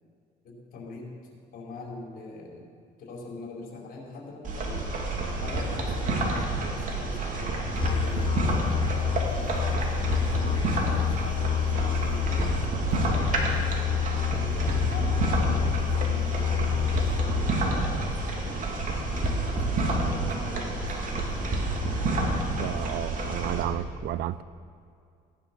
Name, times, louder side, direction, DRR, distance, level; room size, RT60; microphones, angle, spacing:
voice 1, 0.4-1.1 1.5-2.7 3.0-4.8 5.4-13.7 14.3-18.6 18.9-21.6, left 2 dB, 60° left, 4.6 m, -42 dB
sound 1, 4.4-23.6, right 2 dB, 50° right, 2.6 m, -29 dB
Musical instrument, 7.8-17.7, left 10 dB, 30° left, 0.5 m, -28 dB
voice 2, 22.6-24.4, right 13 dB, 75° right, 0.5 m, -32 dB
17.0 x 10.5 x 6.2 m
cardioid pair, 110°, 17 cm